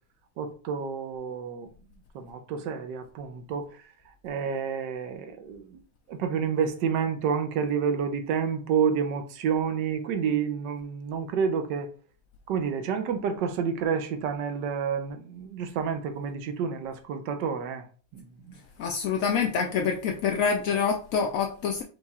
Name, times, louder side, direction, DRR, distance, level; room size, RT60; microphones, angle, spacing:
voice 1, 0.4-1.7 2.1-3.8 4.2-5.8 6.1-11.9 12.5-17.9 18.1-18.5, right 6 dB, 75° right, 1.3 m, -29 dB
voice 2, 18.8-21.8, left 6 dB, 75° left, 0.7 m, -26 dB
4.7 x 2.4 x 4.1 m
omnidirectional pair, 1.9 m